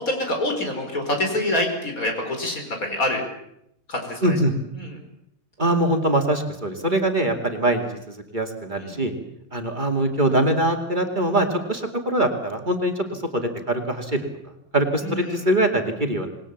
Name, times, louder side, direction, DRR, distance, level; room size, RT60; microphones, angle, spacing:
voice 1, 0.0-3.2 3.9-4.3 4.8-4.9 8.8-9.0 15.0-15.4, left 1 dB, 75° left, 3 dB, 5.5 m, -26 dB
voice 2, 4.2-4.5 5.6-9.1 9.5-14.3 14.7-16.3, right 1 dB, 35° right, 4 dB, 2.7 m, -23 dB
27.0 x 20.5 x 7.3 m, 0.79 s
omnidirectional pair, 1.5 m